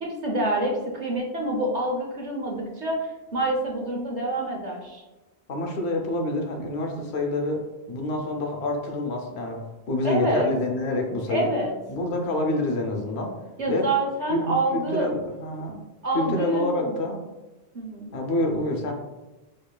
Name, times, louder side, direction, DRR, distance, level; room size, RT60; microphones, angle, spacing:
voice 1, 0.0-5.0 10.0-10.5 11.3-11.7 13.6-15.1 16.0-17.0 17.7-18.1, right 1 dB, 45° right, -1 dB, 0.8 m, -27 dB
voice 2, 5.5-11.5 11.9-13.3 13.7-13.9 14.3-15.8 16.1-17.2 18.1-18.9, left 2 dB, 90° left, 1 dB, 0.9 m, -27 dB
5.1 x 2.4 x 2.2 m, 1.1 s
omnidirectional pair, 1.1 m